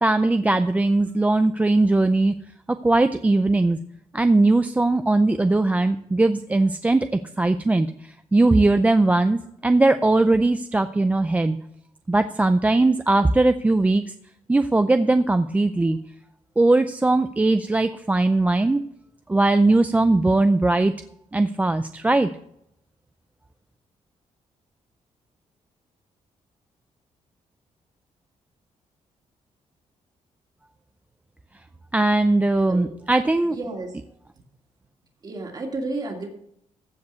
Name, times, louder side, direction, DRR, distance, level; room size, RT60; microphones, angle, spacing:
voice 1, 0.0-2.4 2.7-3.8 4.1-11.6 12.1-14.1 14.5-16.0 16.6-18.8 19.3-20.9 21.3-22.3 31.9-33.6, right 2 dB, 10° right, 9 dB, 0.4 m, -20 dB
voice 2, 32.2-32.9 33.5-33.9 35.2-36.3, right 2 dB, 30° right, 2 dB, 2.4 m, -32 dB
15.0 x 5.3 x 8.1 m, 0.73 s
wide cardioid pair, 160°, 13 cm